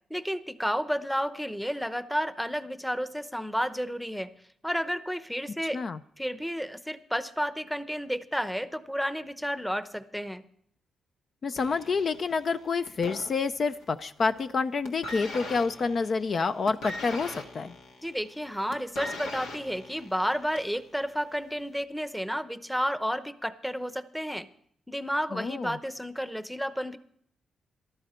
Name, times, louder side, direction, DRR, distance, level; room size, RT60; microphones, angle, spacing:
voice 1, 0.1-4.3 4.6-5.8 6.2-10.4 18.0-24.5 24.9-27.0, equal, ahead, 12 dB, 0.8 m, -31 dB
voice 2, 11.4-17.7 25.3-25.8, left 4 dB, 50° left, 11 dB, 0.5 m, -28 dB
sound 1, 11.6-13.9 14.2-14.5 14.8-20.8 21.6-21.7, left 2 dB, 90° left, 1.7 m, -41 dB
13.5 x 12.0 x 4.4 m, 0.66 s
cardioid pair, 75°, 0 cm